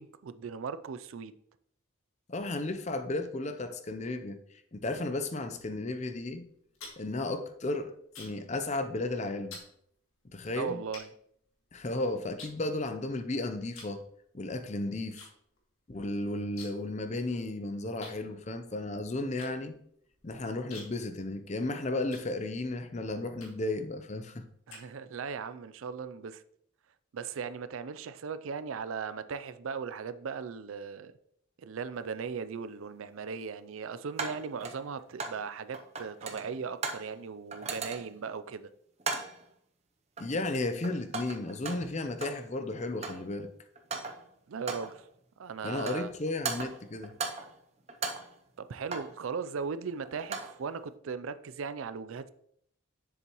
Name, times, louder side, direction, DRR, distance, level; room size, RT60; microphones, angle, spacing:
voice 1, 0.0-1.3 10.6-11.1 24.7-26.4 27.1-31.1 31.6-38.7 44.5-45.0 45.4-46.1 48.6-52.3, right 5 dB, 80° right, 0.4 m, -38 dB
voice 2, 2.3-4.4 4.7-6.5 7.0-9.6 10.2-10.8 11.7-14.0 14.3-15.3 15.9-19.7 20.2-24.5 40.2-43.5 45.6-47.1, left 2 dB, 35° left, 0.6 m, -34 dB
sound 1, 6.5-8.5 8.8-9.1 9.5-9.7 10.4-10.5 10.9-11.9 12.4-13.2 13.7-14.0 14.3-15.3 15.6-15.7 15.9-16.9 17.2-17.3 18.0-22.8 23.4-23.8 24.3-25.3, left 3 dB, 90° left, 1.9 m, -50 dB
sound 2, 31.9-32.0 34.2-35.5 35.7-37.1 37.5-38.2 39.0-39.4 40.2-40.5 40.8-42.5 42.8-43.3 43.7-44.3 44.7-45.0 45.6-46.1 46.4-47.6 47.9-49.2 50.0-50.6, right 4 dB, 30° right, 0.6 m, -38 dB
7.2 x 6.8 x 3.0 m
head